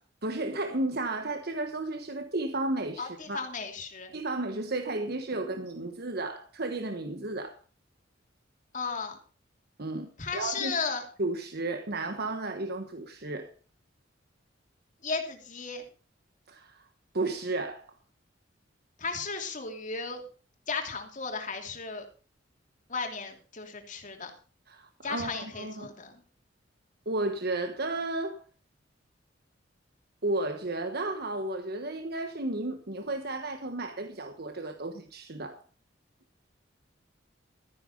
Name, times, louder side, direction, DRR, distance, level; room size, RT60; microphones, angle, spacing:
voice 1, 0.2-3.5 4.1-7.6 9.8-10.7 11.2-13.5 16.5-16.9 17.1-17.8 24.7-25.9 27.1-28.4 30.2-35.6, right 2 dB, 55° right, 1.3 m, -33 dB
voice 2, 3.0-4.1 8.7-9.2 10.2-11.0 15.0-15.8 19.0-20.2 20.7-22.0 22.9-24.3 25.0-26.2, left 4 dB, 40° left, 2.9 m, -35 dB
13.5 x 10.5 x 5.3 m
head